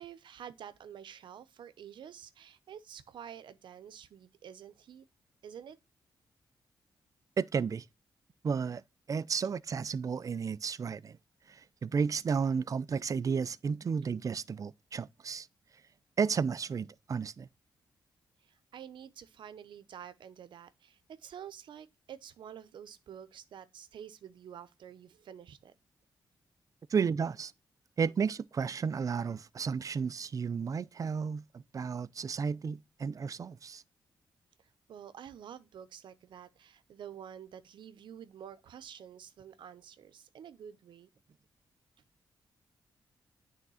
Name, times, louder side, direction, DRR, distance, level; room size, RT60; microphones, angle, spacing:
voice 1, 0.0-5.1 5.4-5.8 18.4-25.8 34.6-41.1, right 9 dB, 75° right, 0.7 m, -49 dB
voice 2, 7.4-7.9 8.4-8.8 9.1-11.2 11.5-15.5 16.2-17.5 26.9-27.5 28.0-33.8, right 6 dB, 45° right, 0.4 m, -32 dB
9.2 x 3.6 x 5.5 m
cardioid pair, 70°, 8 cm